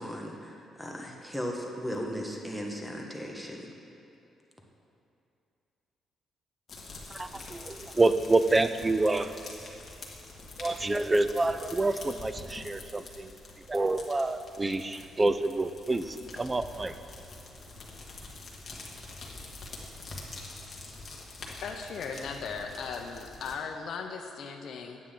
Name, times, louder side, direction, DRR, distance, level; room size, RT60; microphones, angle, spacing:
voice 1, 0.0-3.7, equal, ahead, 0 dB, 1.3 m, -37 dB
sound 1, 6.7-23.5, left 2 dB, 40° left, 1.6 m, -45 dB
voice 2, 7.1-9.4 10.6-13.4 13.7-16.9, right 2 dB, 20° right, 11 dB, 0.4 m, -27 dB
voice 3, 21.6-25.0, left 5 dB, 65° left, 4 dB, 0.6 m, -37 dB
9.4 x 8.5 x 3.8 m, 2.6 s
cardioid pair, 90°, 0 cm